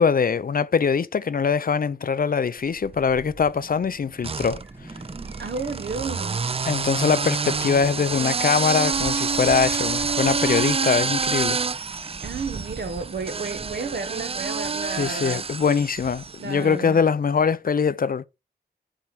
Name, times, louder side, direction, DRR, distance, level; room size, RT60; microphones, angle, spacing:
voice 1, 0.0-4.6 6.7-11.6 14.9-18.3, left 6 dB, 55° left, 0.6 m, -22 dB
sound 1, 2.8-3.5 4.2-16.5, right 5 dB, 35° right, 0.4 m, -27 dB
sound 2, 3.5-15.2, right 1 dB, 10° right, 1.5 m, -47 dB
voice 2, 5.4-6.6 12.2-15.5 16.4-17.0, right 4 dB, 65° right, 1.5 m, -32 dB
7.5 x 4.6 x 7.1 m
wide cardioid pair, 75°, 18 cm